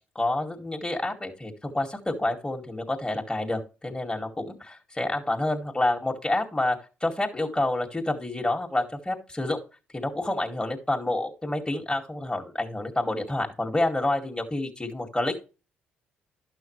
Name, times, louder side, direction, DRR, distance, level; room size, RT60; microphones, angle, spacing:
voice 1, 0.2-9.6 9.9-15.4, left 1 dB, 15° left, 1 dB, 2.2 m, -28 dB
12.0 x 5.9 x 3.2 m, 0.31 s
hypercardioid pair, 50°, 5 cm